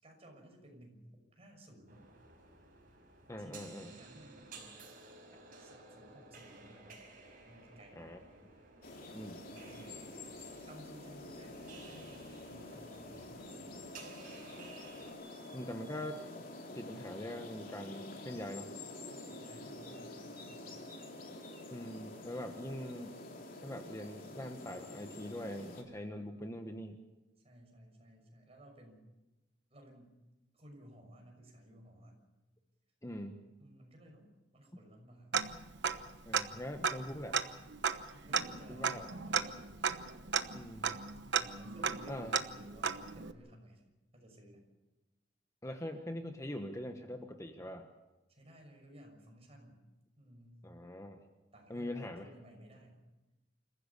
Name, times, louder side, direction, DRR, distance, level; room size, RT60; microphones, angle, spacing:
voice 1, 0.0-2.1 3.4-4.8 5.6-7.1 7.4-8.2 9.1-10.1 10.6-14.0 19.1-20.8 27.4-29.1 29.7-30.2 30.5-32.2 33.6-35.4 38.1-39.6 41.4-43.8 44.1-44.6 48.3-49.8 50.2-50.7 51.5-53.0, equal, 35° right, 2 dB, 6.2 m, -57 dB
sound 1, 1.9-15.1, right 3 dB, 50° right, 5.6 m, -56 dB
voice 2, 3.3-3.9 8.0-8.2 9.1-9.4 15.5-16.2 16.7-18.7 21.7-23.2 23.6-27.0 33.0-33.4 36.2-37.4 38.7-39.1 40.5-40.9 42.1-42.3 45.6-47.9 50.6-51.2 51.7-52.3, left 1 dB, 15° left, 5 dB, 1.2 m, -43 dB
sound 2, 8.8-25.8, left 2 dB, 50° left, 3.0 m, -48 dB
Tick-tock, 35.3-36.1 36.3-36.4 36.8-43.3, right 6 dB, 65° right, 1.1 m, -35 dB
28.5 x 15.0 x 7.0 m, 1.1 s
head